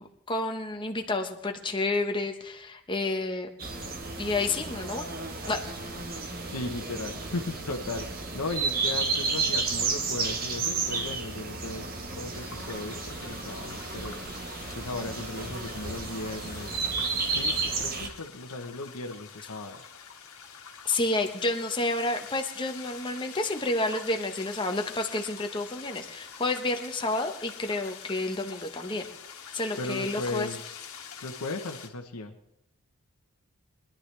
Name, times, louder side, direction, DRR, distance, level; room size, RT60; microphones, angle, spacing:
voice 1, 0.0-3.5 4.2-5.1 5.5-5.6 20.8-29.1 29.5-30.5, left 2 dB, 20° left, 4 dB, 1.1 m, -30 dB
sound 1, 3.6-18.1, right 4 dB, 40° right, 1.3 m, -32 dB
voice 2, 6.5-14.2 14.7-19.9 29.8-30.8 31.2-32.3, left 2 dB, 90° left, 4 dB, 1.1 m, -37 dB
sound 2, 12.3-31.9, left 7 dB, 70° left, 1.7 m, -45 dB
23.0 x 11.5 x 3.4 m, 0.75 s
head